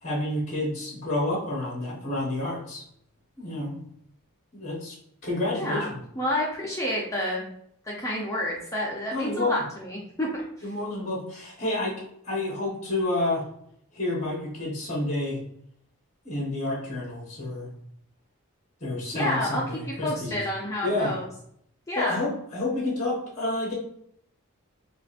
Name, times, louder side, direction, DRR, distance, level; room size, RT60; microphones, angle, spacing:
voice 1, 0.0-2.8 3.4-3.8 4.5-4.9 5.2-6.0 9.1-9.5 10.6-13.5 13.9-15.4 16.2-17.7 18.8-20.4 20.8-21.2 21.9-23.7, left 2 dB, 30° left, -4 dB, 0.9 m, -29 dB
voice 2, 5.5-7.5 7.8-10.5 19.1-21.3 21.9-22.3, left 1 dB, 15° left, -4 dB, 0.5 m, -29 dB
4.7 x 2.5 x 2.4 m, 0.71 s
head